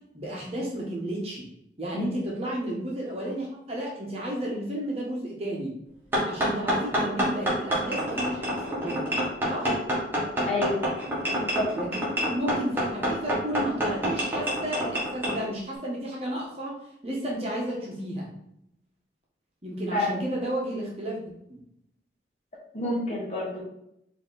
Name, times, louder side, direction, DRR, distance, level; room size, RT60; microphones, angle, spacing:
voice 1, 0.1-1.5 1.8-5.8 6.2-9.1 9.5-9.8 11.7-11.9 12.2-18.3 19.6-21.6, right 1 dB, 35° right, -3 dB, 1.1 m, -32 dB
sound 1, 6.1-15.4, equal, 10° right, 1.3 m, -27 dB
voice 2, 10.4-10.9 11.4-11.7 19.9-20.2 22.7-23.6, left 2 dB, 35° left, -2 dB, 1.2 m, -29 dB
4.6 x 2.9 x 3.9 m, 0.77 s
head